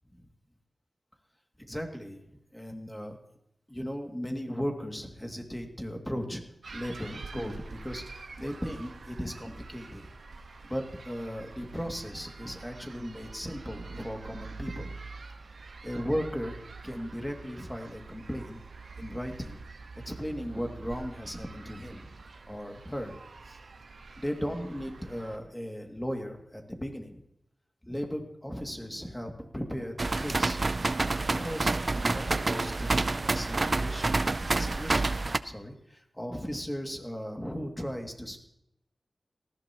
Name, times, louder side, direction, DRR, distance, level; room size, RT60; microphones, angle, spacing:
voice 1, 1.6-3.2 3.7-6.4 6.7-10.0 10.7-15.0 15.8-16.6 16.8-18.6 19.0-19.6 20.0-22.2 22.5-23.1 23.5-23.6 24.2-27.2 27.8-30.7 31.3-34.2 34.5-35.1 35.4-38.4, equal, 10° left, 2 dB, 2.5 m, -37 dB
sound 1, 6.6-25.4, right 4 dB, 85° right, 1.3 m, -46 dB
sound 2, 30.0-35.4, right 3 dB, 45° right, 0.5 m, -28 dB
19.0 x 15.5 x 3.1 m, 0.79 s
wide cardioid pair, 70°, 0 cm